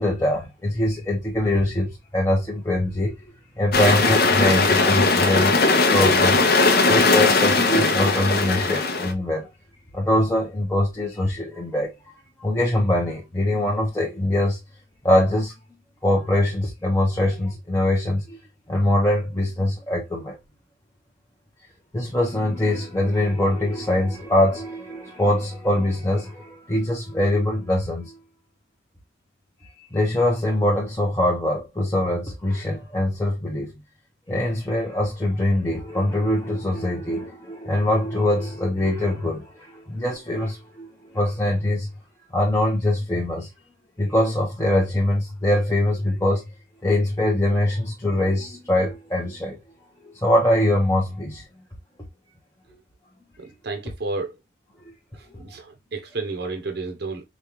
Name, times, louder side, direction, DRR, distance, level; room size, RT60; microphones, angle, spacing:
voice 1, 0.0-3.1 3.6-5.6 5.9-6.4 6.9-9.5 9.9-11.9 12.4-14.6 15.0-15.5 16.0-18.4 18.7-20.4 21.9-28.2 29.8-33.7 34.3-41.9 42.3-43.5 44.0-46.4 46.8-49.6 50.0-51.4 54.8-54.9, left 1 dB, 15° left, 0.7 m, -23 dB
sound 1, 3.7-9.1, left 3 dB, 50° left, 0.7 m, -19 dB
voice 2, 53.6-54.4 55.4-57.2, right 3 dB, 50° right, 0.7 m, -31 dB
5.0 x 2.3 x 2.9 m
head